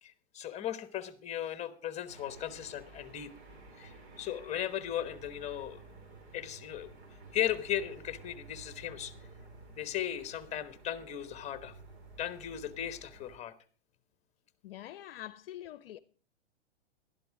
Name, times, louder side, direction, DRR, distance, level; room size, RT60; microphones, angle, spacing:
voice 1, 0.0-3.3 3.8-5.8 6.3-6.9 7.3-9.1 9.8-11.8 12.2-13.5, left 11 dB, 20° left, 1.2 m, -37 dB
sound 1, 2.1-13.4, right 3 dB, 65° right, 4.2 m, -53 dB
voice 2, 14.6-16.0, left 13 dB, 55° left, 0.7 m, -45 dB
12.0 x 11.5 x 4.8 m
hypercardioid pair, 125°, 34 cm